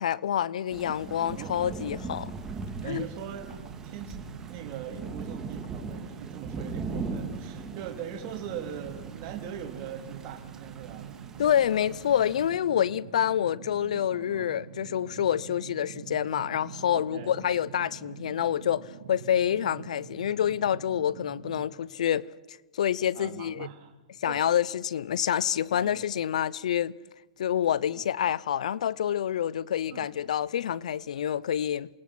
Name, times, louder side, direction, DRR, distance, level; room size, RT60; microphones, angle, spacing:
voice 1, 0.0-2.3 2.9-3.1 11.4-22.3 22.7-23.7 24.2-26.9 27.4-31.9, left 10 dB, 80° left, 0.6 m, -27 dB
Thunder / Rain, 0.7-12.5, right 4 dB, 15° right, 2.3 m, -40 dB
voice 2, 2.8-3.6 3.8-4.2 4.5-11.2 14.1-14.5 16.9-17.3 23.1-23.9 24.3-24.5 25.7-26.0 27.9-28.0 29.9-30.1, right 9 dB, 40° right, 2.7 m, -41 dB
sound 1, 3.5-21.7, right 9 dB, 75° right, 2.5 m, -45 dB
28.0 x 18.5 x 6.0 m
hypercardioid pair, 150°, 4 cm